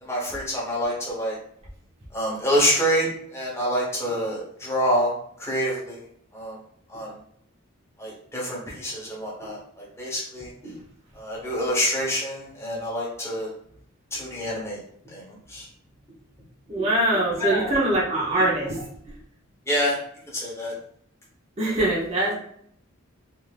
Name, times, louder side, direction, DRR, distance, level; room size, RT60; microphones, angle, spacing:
voice 1, 0.0-1.4 2.1-5.1 5.4-6.0 6.3-6.6 6.9-7.1 8.0-10.7 11.1-13.5 14.1-14.8 15.1-15.7 16.8-16.9 17.4-17.7 18.3-18.8 19.7-20.0 20.3-20.8, equal, 15° left, -5 dB, 0.8 m, -27 dB
voice 2, 16.7-18.7 21.6-22.3, right 1 dB, 30° right, -6 dB, 0.7 m, -23 dB
2.5 x 2.4 x 3.2 m, 0.67 s
head